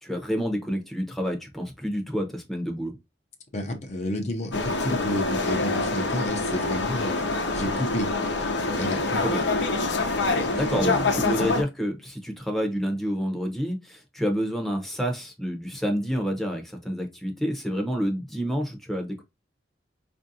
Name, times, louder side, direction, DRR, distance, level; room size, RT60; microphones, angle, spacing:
voice 1, 0.0-2.9 10.5-19.2, equal, ahead, 0.7 m, -28 dB
voice 2, 3.5-8.1 8.7-9.4 10.3-11.1, left 1 dB, 40° left, 0.6 m, -31 dB
sound 1, 4.5-11.6, left 3 dB, 90° left, 0.8 m, -26 dB
4.4 x 2.6 x 2.6 m
head